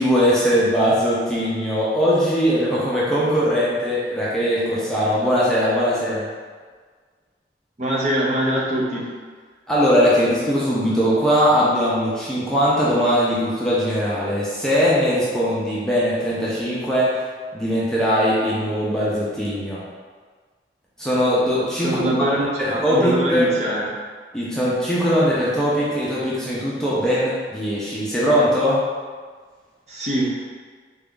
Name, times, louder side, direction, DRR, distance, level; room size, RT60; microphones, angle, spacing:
voice 1, 0.0-6.3 9.7-17.2 17.5-19.8 21.0-22.0 22.4-23.5 24.3-28.8, equal, 5° left, -8 dB, 0.6 m, -20 dB
voice 2, 7.8-9.1 21.8-23.8 29.9-30.4, right 1 dB, 40° right, -5 dB, 0.7 m, -23 dB
3.4 x 2.5 x 3.6 m, 1.5 s
head